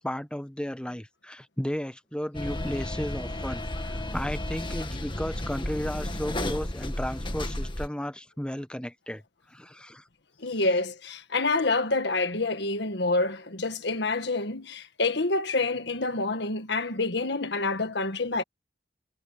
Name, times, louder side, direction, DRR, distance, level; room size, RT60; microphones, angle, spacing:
voice 1, 0.0-9.2 9.5-10.0 10.5-10.6, equal, 5° left, 1.0 m, -34 dB
sound 1, 2.3-7.9, left 1 dB, 25° left, 1.7 m, -33 dB
voice 2, 10.4-18.4, left 3 dB, 65° left, 1.7 m, -27 dB
head